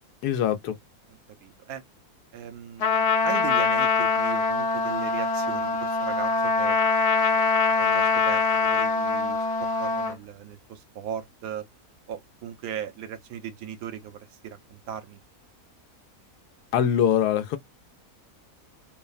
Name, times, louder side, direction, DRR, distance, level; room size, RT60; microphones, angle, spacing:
voice 1, 0.2-0.8 16.7-17.6, left 9 dB, 90° left, 1.2 m, -23 dB
voice 2, 1.4-1.8 2.3-6.8 7.3-7.4 7.8-11.6 12.1-15.2, right 9 dB, 75° right, 1.1 m, -38 dB
Trumpet, 2.8-10.1, left 4 dB, 60° left, 0.9 m, -23 dB
3.0 x 2.1 x 2.4 m
omnidirectional pair, 1.6 m